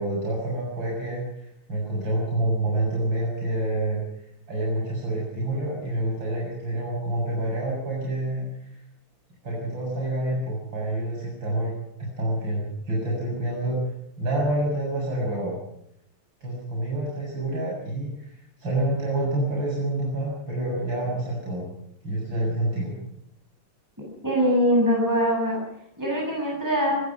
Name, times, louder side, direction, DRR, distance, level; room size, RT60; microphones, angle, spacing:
voice 1, 0.0-4.0 4.5-8.5 9.4-11.7 12.0-13.8 14.2-15.5 16.4-18.3 18.6-21.7 22.0-22.9, right 1 dB, 60° right, -4 dB, 7.9 m, -27 dB
voice 2, 24.2-25.6 26.0-27.0, equal, 10° right, -2 dB, 6.8 m, -22 dB
24.0 x 21.0 x 6.0 m, 0.75 s
omnidirectional pair, 2.3 m